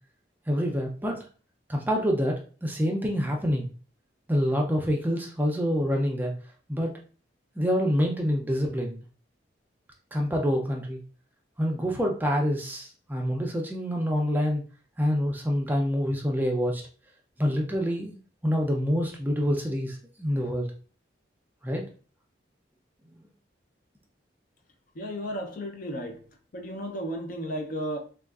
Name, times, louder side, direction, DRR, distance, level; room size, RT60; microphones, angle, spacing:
voice 1, 0.5-1.3 1.7-3.7 4.3-6.3 6.7-7.0 7.6-9.0 10.1-11.0 11.6-14.6 15.0-16.8 17.4-20.7 21.6-21.9, equal, 10° right, 0.4 m, -26 dB
voice 2, 25.0-26.1 26.5-28.0, equal, 45° left, 0.5 m, -33 dB
3.5 x 2.3 x 2.3 m
head